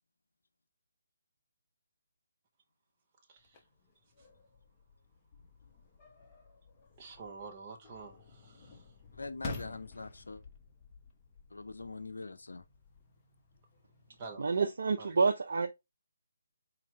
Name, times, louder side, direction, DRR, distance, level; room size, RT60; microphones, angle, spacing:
voice 1, 3.3-3.6 4.2-4.3 7.0-8.9 14.2-14.6 15.0-15.2, right 4 dB, 30° right, 0.7 m, -48 dB
sound 1, 3.4-14.3, left 3 dB, 25° left, 0.8 m, -51 dB
voice 2, 9.1-10.4 11.5-12.6, left 3 dB, 75° left, 0.5 m, -43 dB
voice 3, 14.4-15.7, right 4 dB, 60° right, 0.4 m, -28 dB
4.4 x 2.4 x 3.0 m
figure-of-eight pair, 150°, 0 cm